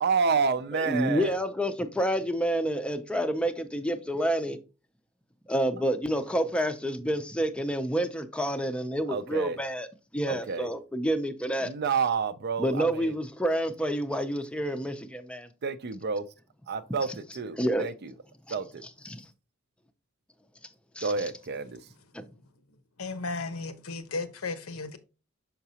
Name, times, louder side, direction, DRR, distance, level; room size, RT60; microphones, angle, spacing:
voice 1, 0.0-1.4 9.1-9.6 10.3-10.7 11.6-13.1 15.6-16.2 16.7-17.1 17.4-17.9 18.5-18.8 21.0-21.8, right 5 dB, 50° right, 0.5 m, -29 dB
voice 2, 0.7-4.6 5.5-9.9 10.1-11.7 12.6-15.5 17.6-17.8 18.5-18.6 19.0-19.2 21.0-21.1 22.1-22.2, right 1 dB, 5° left, 0.5 m, -28 dB
voice 3, 23.0-25.0, left 3 dB, 85° left, 0.9 m, -34 dB
5.8 x 5.7 x 2.8 m
head